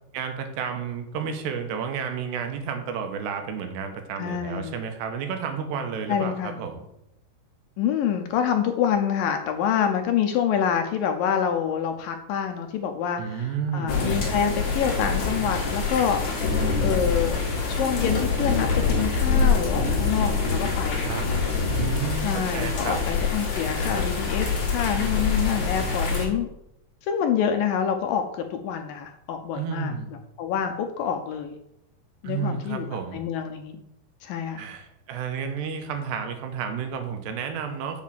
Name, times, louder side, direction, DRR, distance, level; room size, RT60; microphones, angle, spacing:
voice 1, 0.1-6.8 13.2-14.0 21.0-21.3 21.7-23.0 29.5-30.1 32.2-33.2 34.6-38.0, right 6 dB, 85° right, 6 dB, 3.3 m, -31 dB
voice 2, 4.2-4.8 6.1-6.6 7.8-16.2 16.8-17.4 17.7-21.2 22.2-26.5 27.1-31.6 32.2-32.9 33.1-33.8 34.2-34.6, left 8 dB, 80° left, 6 dB, 2.0 m, -27 dB
sound 1, 13.9-26.3, left 4 dB, 50° left, 3.5 m, -25 dB
7.5 x 6.4 x 7.4 m, 0.81 s
omnidirectional pair, 4.8 m